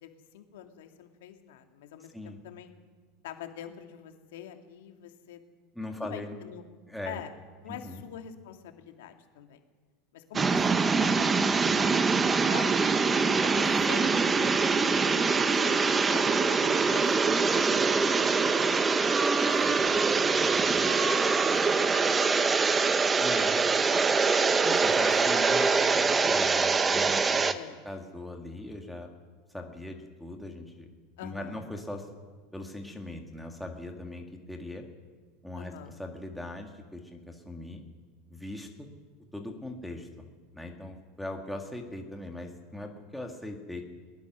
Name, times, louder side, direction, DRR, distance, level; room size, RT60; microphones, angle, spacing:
voice 1, 0.0-2.7 3.2-5.4 5.9-6.6 7.0-7.3 7.6-9.6 10.1-12.8 13.4-14.5 14.9-18.1 18.6-18.9 19.4-20.1 20.8-22.8 24.7-24.8 25.6-25.8 27.5-27.8 31.2-31.6 35.6-36.0, left 10 dB, 80° left, 5 dB, 2.2 m, -45 dB
voice 2, 5.8-6.3 6.9-7.2 7.7-8.0 23.2-23.6 24.6-25.7 25.9-27.6 27.8-29.1 29.5-30.9 31.2-32.1 32.5-34.8 35.4-37.8 38.3-38.9 39.3-40.1 40.5-43.8, left 1 dB, ahead, 2 dB, 1.9 m, -40 dB
sound 1, 10.3-27.5, right 4 dB, 15° right, 0.8 m, -24 dB
21.5 x 19.5 x 6.2 m, 1.5 s
supercardioid pair, 155°, 0 cm